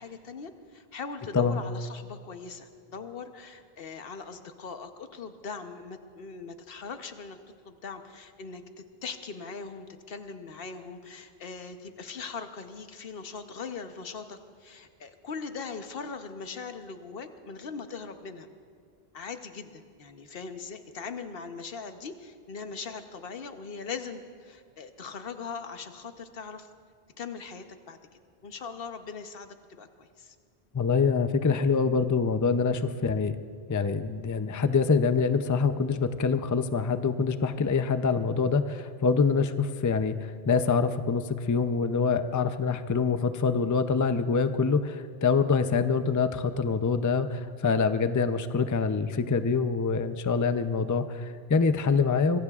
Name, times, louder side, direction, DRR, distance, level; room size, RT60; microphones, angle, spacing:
voice 1, 0.0-7.4 7.6-8.6 9.0-18.5 19.1-26.7 27.2-28.0 28.4-30.3, left 5 dB, 65° left, 7 dB, 1.1 m, -40 dB
voice 2, 30.7-33.4 33.7-52.4, left 5 dB, 25° left, 10 dB, 0.4 m, -25 dB
25.0 x 22.5 x 2.4 m, 2.1 s
omnidirectional pair, 1.1 m